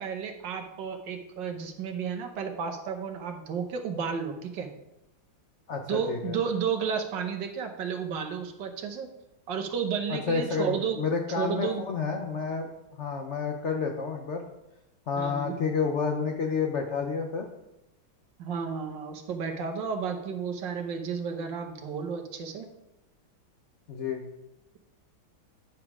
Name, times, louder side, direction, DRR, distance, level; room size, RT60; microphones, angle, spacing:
voice 1, 0.0-4.7 5.8-9.1 9.5-11.0 11.4-11.8 15.2-15.5 18.4-22.7, right 6 dB, 65° right, 4 dB, 1.5 m, -32 dB
voice 2, 5.7-6.4 10.1-14.4 15.1-17.5 23.9-24.2, left 5 dB, 85° left, 3 dB, 0.6 m, -30 dB
9.6 x 3.4 x 6.0 m, 0.92 s
omnidirectional pair, 2.2 m